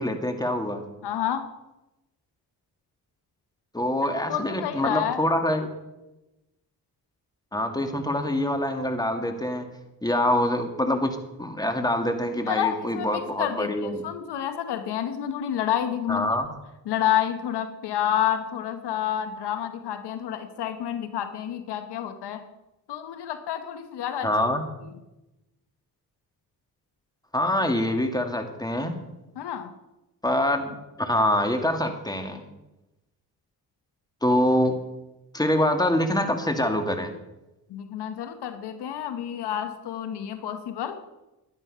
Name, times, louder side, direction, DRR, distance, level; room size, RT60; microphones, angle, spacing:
voice 1, 0.0-0.8 3.7-5.7 7.5-9.7 10.0-14.0 16.1-16.5 24.2-24.6 27.3-28.9 30.2-32.4 34.2-34.7 35.3-37.1, left 1 dB, 10° left, 6 dB, 2.2 m, -25 dB
voice 2, 1.0-1.4 4.3-5.2 12.5-16.3 16.9-22.4 22.9-24.3 29.4-29.7 37.7-41.0, left 10 dB, 85° left, 9 dB, 1.1 m, -29 dB
11.0 x 11.0 x 5.5 m, 0.98 s
cardioid pair, 60°, 39 cm